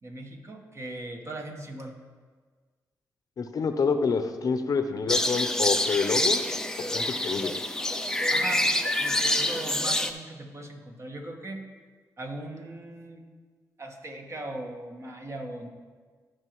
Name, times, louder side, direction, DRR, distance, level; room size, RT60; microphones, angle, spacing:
voice 1, 0.0-1.9 8.3-8.7 9.0-11.6 12.2-13.2 13.8-15.7, right 2 dB, 45° right, 2 dB, 1.4 m, -39 dB
voice 2, 3.4-6.4 6.9-7.5, left 5 dB, 60° left, 8 dB, 0.7 m, -27 dB
sound 1, 5.1-10.1, left 1 dB, 10° left, 0.6 m, -26 dB
14.5 x 5.2 x 3.1 m, 1.5 s
cardioid pair, 55°, 7 cm